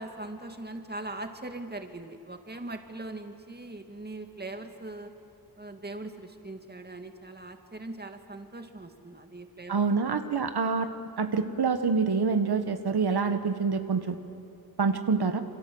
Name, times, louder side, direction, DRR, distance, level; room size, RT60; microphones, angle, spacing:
voice 1, 0.0-5.1 5.6-9.8, right 2 dB, 25° right, 6 dB, 2.3 m, -40 dB
voice 2, 9.7-10.9 11.2-14.2 14.8-15.4, right 5 dB, 85° right, 8 dB, 1.5 m, -26 dB
28.0 x 26.5 x 7.9 m, 2.8 s
wide cardioid pair, 100°, 38 cm